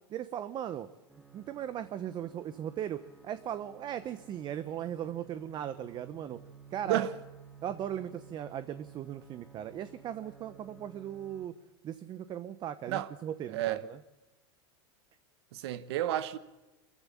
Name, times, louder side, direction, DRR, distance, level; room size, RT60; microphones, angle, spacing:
voice 1, 0.1-0.9 1.3-6.4 6.7-7.1 7.6-11.5 11.8-14.0, right 10 dB, 30° right, 0.9 m, -38 dB
sound 1, 1.1-11.5, right 6 dB, 5° right, 2.2 m, -55 dB
voice 2, 15.5-16.4, right 13 dB, 70° right, 1.2 m, -31 dB
24.5 x 14.5 x 8.4 m
supercardioid pair, 130°, 14 cm